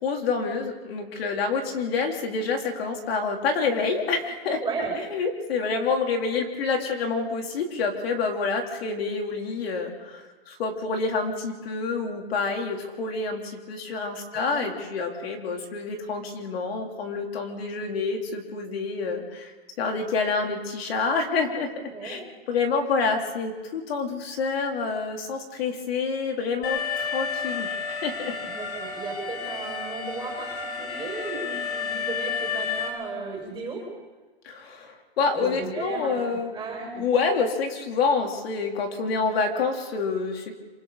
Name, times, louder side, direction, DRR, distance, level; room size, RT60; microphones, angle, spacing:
voice 1, 0.0-4.6 5.0-28.3 34.4-36.5 37.0-40.5, left 4 dB, 70° left, 2 dB, 3.9 m, -28 dB
voice 2, 4.6-4.9 14.3-14.6 21.9-22.2 28.4-33.8 35.4-36.2 36.5-37.0, right 4 dB, 10° right, -2 dB, 5.9 m, -35 dB
Alarm, 26.6-32.9, left 5 dB, 85° left, 5.2 m, -31 dB
27.0 x 24.5 x 4.3 m, 1.3 s
hypercardioid pair, 155°, 32 cm